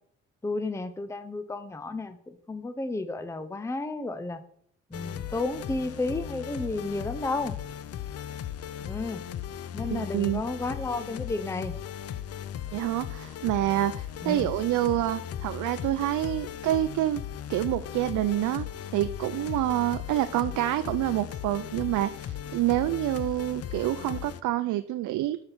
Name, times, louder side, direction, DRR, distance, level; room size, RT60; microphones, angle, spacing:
voice 1, 0.4-2.2 2.5-4.4 4.9-7.5 8.8-9.2 9.7-11.7 14.2-14.5, left 2 dB, 10° left, 10 dB, 0.6 m, -32 dB
sound 1, 4.9-24.4, left 10 dB, 55° left, 0.6 m, -37 dB
voice 2, 9.9-10.4 12.7-17.2 17.5-18.7 18.9-25.4, right 14 dB, 80° right, 11 dB, 0.5 m, -27 dB
7.6 x 5.8 x 5.7 m, 0.62 s
cardioid pair, 90°, 30 cm